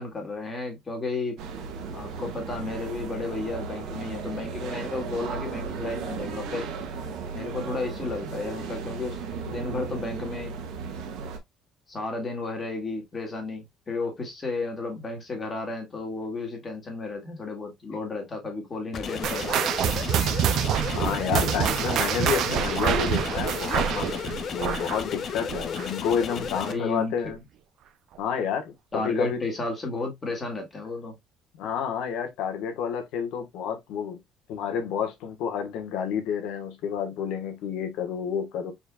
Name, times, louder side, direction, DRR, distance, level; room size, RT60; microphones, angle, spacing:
voice 1, 0.0-1.4 1.9-6.7 7.3-9.2 9.4-10.5 11.9-20.1 26.6-27.1 28.9-31.2, left 3 dB, 25° left, 1.8 m, -33 dB
sound 1, 1.4-11.4, right 5 dB, 75° right, 1.3 m, -35 dB
sound 2, 18.9-26.7, left 7 dB, 40° left, 0.7 m, -33 dB
sound 3, 19.2-26.1 26.4-26.7 27.3-27.4 28.2-28.3, right 10 dB, 55° right, 0.5 m, -26 dB
voice 2, 20.9-24.2 24.5-27.4 28.2-29.4 31.6-34.2 34.5-38.7, left 7 dB, 75° left, 1.3 m, -30 dB
4.8 x 4.4 x 2.3 m
cardioid pair, 150°, 0 cm